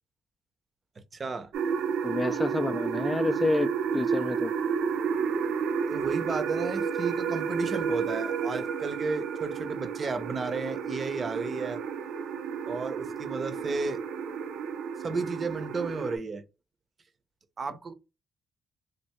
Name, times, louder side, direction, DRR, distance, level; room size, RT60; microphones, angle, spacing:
voice 1, 1.1-1.5 5.9-11.8 12.7-14.0 15.0-16.4 17.6-17.9, right 4 dB, 35° right, 0.6 m, -33 dB
sound 1, 1.5-16.2, right 6 dB, 85° right, 0.6 m, -31 dB
voice 2, 2.0-4.5, left 2 dB, 20° left, 0.3 m, -28 dB
3.2 x 2.6 x 2.9 m
cardioid pair, 95°, 0 cm